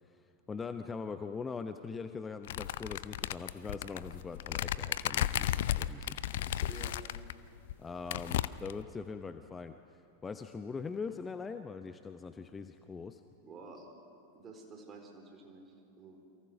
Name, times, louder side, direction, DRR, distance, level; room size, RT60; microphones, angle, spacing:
voice 1, 0.0-6.7 7.8-13.2, left 5 dB, 15° left, 9 dB, 0.8 m, -42 dB
sound 1, 2.5-7.3 7.7-7.8 8.1-8.8, left 12 dB, 55° left, 0.6 m, -34 dB
voice 2, 6.7-7.0 13.4-13.9 14.3-16.2, right 3 dB, 25° right, 3 dB, 4.3 m, -50 dB
29.0 x 23.5 x 6.1 m, 2.7 s
figure-of-eight pair, 90°, 0 cm